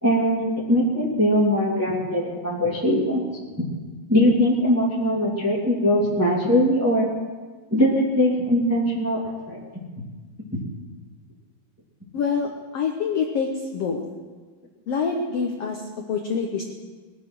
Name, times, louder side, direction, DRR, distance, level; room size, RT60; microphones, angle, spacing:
voice 1, 0.0-3.2 4.1-7.1 7.7-9.2 9.5-9.6 10.5-10.6, equal, 5° right, -5 dB, 2.0 m, -21 dB
voice 2, 12.1-14.0 14.9-16.7, left 5 dB, 75° left, 2 dB, 1.4 m, -26 dB
21.5 x 7.4 x 6.2 m, 1.4 s
omnidirectional pair, 4.1 m